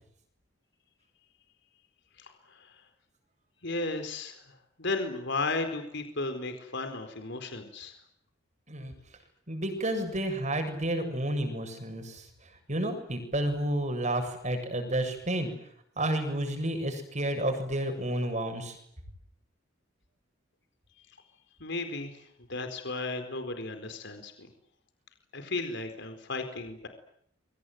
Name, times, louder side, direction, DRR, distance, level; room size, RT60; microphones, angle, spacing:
voice 1, 3.6-4.4 4.8-7.9 21.6-22.2 22.5-24.5 25.3-26.9, left 3 dB, 60° left, 8 dB, 4.3 m, -34 dB
voice 2, 9.5-12.2 12.7-15.5 16.0-18.8, right 1 dB, 40° right, 6 dB, 7.6 m, -30 dB
29.0 x 24.0 x 7.9 m, 0.70 s
head